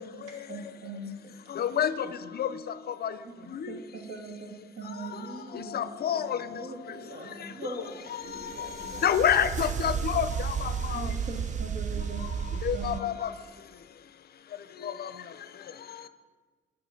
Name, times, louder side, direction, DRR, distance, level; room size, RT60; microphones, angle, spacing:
voice 1, 0.1-1.3 3.2-3.3 3.7-5.2 5.6-5.9 6.1-6.2 10.9-13.1, right 3 dB, 55° right, 1.8 m, -41 dB
voice 2, 1.5-3.8 4.8-6.7 7.4-7.5 8.2-11.2 12.0-16.1, left 9 dB, 50° left, 0.6 m, -31 dB
voice 3, 5.1-9.1 13.0-13.2, equal, 80° right, 2.8 m, -43 dB
sound 1, 8.4-13.0, right 7 dB, 40° right, 0.4 m, -33 dB
9.5 x 6.2 x 5.8 m
cardioid pair, 90°, 20 cm